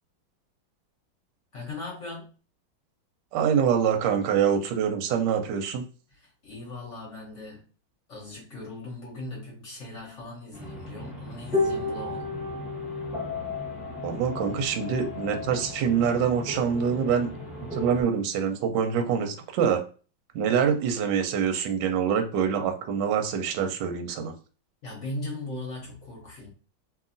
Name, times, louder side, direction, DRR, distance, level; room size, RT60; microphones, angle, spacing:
voice 1, 1.5-2.3 6.1-7.6 8.1-12.3 24.8-26.5, left 2 dB, 55° left, 0.9 m, -39 dB
voice 2, 3.3-5.8 14.0-17.3 17.7-19.8 20.3-24.3, right 7 dB, 75° right, 1.1 m, -25 dB
sound 1, 10.5-18.0, left 3 dB, ahead, 0.6 m, -33 dB
2.8 x 2.6 x 2.5 m
omnidirectional pair, 2.2 m